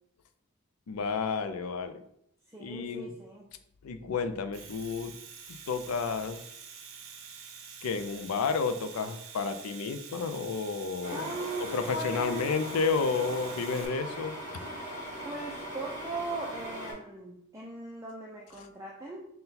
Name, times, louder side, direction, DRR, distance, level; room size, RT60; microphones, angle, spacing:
voice 1, 0.9-2.0 2.6-3.1 3.8-5.1 5.7-6.4 7.8-11.4 11.7-14.3, left 5 dB, 85° left, 10 dB, 0.4 m, -31 dB
voice 2, 2.5-3.5 11.1-12.6 15.2-19.3, right 2 dB, 15° right, -3 dB, 0.3 m, -39 dB
Domestic sounds home sounds, 4.4-13.9, right 6 dB, 65° right, 0.6 m, -47 dB
sound 1, 11.0-16.9, right 1 dB, 15° left, 1.4 m, -40 dB
3.8 x 2.2 x 4.1 m, 0.75 s
head